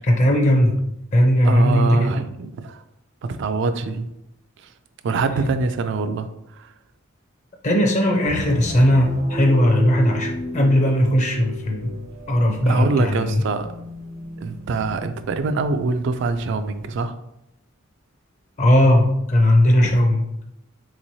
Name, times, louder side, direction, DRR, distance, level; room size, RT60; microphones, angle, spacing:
voice 1, 0.0-0.8 1.1-2.2 7.6-11.9 12.3-13.4 18.6-20.3, left 1 dB, 35° left, 2 dB, 0.5 m, -18 dB
voice 2, 1.4-2.8 3.2-4.1 5.0-6.3 6.5-6.7 12.7-13.7 14.4-17.1, right 3 dB, 60° right, 10 dB, 0.3 m, -24 dB
sound 1, 8.3-17.0, right 1 dB, 85° right, 0.8 m, -35 dB
3.9 x 3.0 x 2.7 m, 0.80 s
head